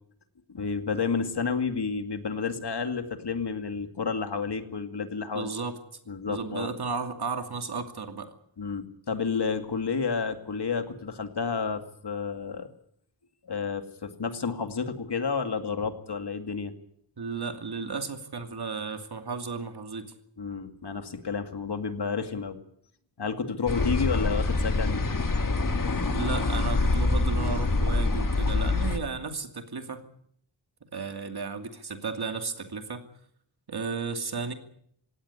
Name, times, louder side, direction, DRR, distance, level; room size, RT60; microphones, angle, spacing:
voice 1, 0.5-5.5 6.1-6.7 8.6-12.7 13.4-16.7 20.4-22.6 23.2-25.0, left 5 dB, 60° left, 7 dB, 2.3 m, -30 dB
voice 2, 5.3-5.8 6.3-8.3 17.2-20.1 26.1-30.0 30.9-33.1 33.7-34.5, right 4 dB, 55° right, 6 dB, 2.7 m, -34 dB
sound 1, 23.7-29.0, left 3 dB, 45° left, 2.0 m, -25 dB
18.5 x 17.5 x 9.7 m, 0.68 s
wide cardioid pair, 110°, 45 cm